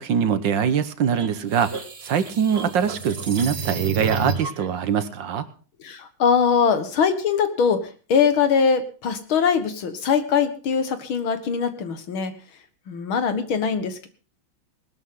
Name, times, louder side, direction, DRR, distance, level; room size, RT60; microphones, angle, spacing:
voice 1, 0.0-1.7 2.0-5.5, right 7 dB, 65° right, 12 dB, 1.8 m, -23 dB
sound 1, 1.2-4.7, right 5 dB, 35° right, 1.5 m, -30 dB
voice 2, 5.8-12.3 12.9-14.1, left 6 dB, 80° left, 9 dB, 2.4 m, -22 dB
20.0 x 12.5 x 3.8 m, 0.39 s
omnidirectional pair, 2.2 m